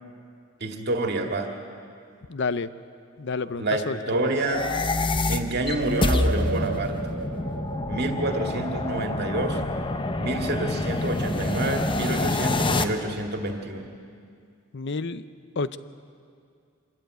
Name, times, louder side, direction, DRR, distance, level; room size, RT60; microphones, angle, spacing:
voice 1, 0.6-1.5 3.5-4.7 5.3-7.0 7.9-9.6 10.2-13.9, right 2 dB, 50° right, 4 dB, 2.1 m, -28 dB
voice 2, 2.3-2.7 3.2-4.2 14.7-15.2 15.6-15.8, left 4 dB, 60° left, 14 dB, 0.7 m, -29 dB
sound 1, 4.3-12.8, left 2 dB, 25° left, 0.8 m, -27 dB
sound 2, 5.8-9.5 9.8-9.9, right 4 dB, 70° right, 0.8 m, -35 dB
25.0 x 13.5 x 9.2 m, 2.3 s
head